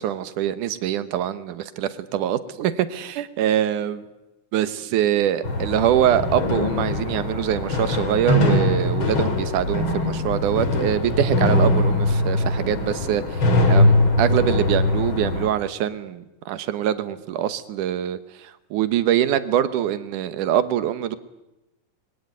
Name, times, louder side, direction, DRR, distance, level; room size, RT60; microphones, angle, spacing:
voice 1, 0.0-4.0 4.5-21.2, right 11 dB, 80° right, 12 dB, 2.6 m, -24 dB
sound 1, 5.4-15.5, left 2 dB, 40° left, 3.0 m, -21 dB
22.0 x 18.5 x 9.5 m, 0.96 s
omnidirectional pair, 3.6 m